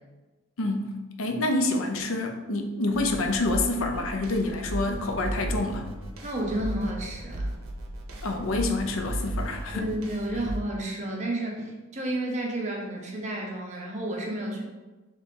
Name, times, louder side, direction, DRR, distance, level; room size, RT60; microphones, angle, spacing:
voice 1, 0.6-0.9 1.2-5.9 8.2-9.9, left 2 dB, 75° left, 4 dB, 0.5 m, -27 dB
sound 1, 2.9-10.6, right 1 dB, 80° right, 0.7 m, -35 dB
voice 2, 6.2-7.5 9.7-14.6, right 1 dB, 35° right, -1 dB, 0.7 m, -31 dB
3.5 x 3.1 x 4.1 m, 1.2 s
head